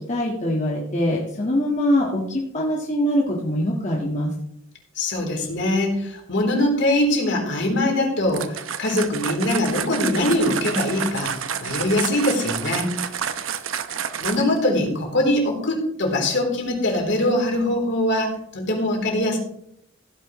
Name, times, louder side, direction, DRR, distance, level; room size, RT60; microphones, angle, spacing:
voice 1, 0.0-4.3, left 1 dB, 35° left, -2 dB, 1.7 m, -23 dB
voice 2, 5.0-12.9 14.2-19.4, left 1 dB, 60° left, 0 dB, 3.7 m, -22 dB
sound 1, 8.3-14.6, right 8 dB, 85° right, 0.8 m, -29 dB
16.0 x 9.9 x 3.2 m, 0.71 s
head